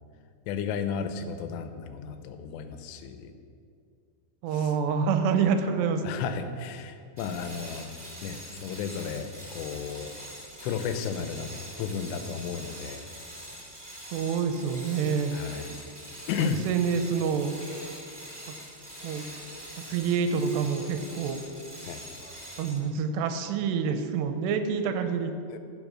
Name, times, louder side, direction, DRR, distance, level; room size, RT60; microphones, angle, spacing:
voice 1, 0.5-3.3 4.5-4.7 6.0-7.9 8.2-9.3 9.5-10.1 10.6-11.5 11.8-13.1 15.3-15.7 16.3-16.6 21.9-22.0 25.5-25.6, left 7 dB, 85° left, 9 dB, 2.9 m, -33 dB
voice 2, 4.4-6.0 14.1-15.3 16.4-17.5 19.0-19.2 19.8-21.4 22.6-25.3, right 6 dB, 80° right, 7 dB, 2.8 m, -27 dB
sound 1, 7.2-22.9, equal, 15° right, 0.8 m, -44 dB
14.5 x 6.0 x 6.2 m, 2.4 s
omnidirectional pair, 4.9 m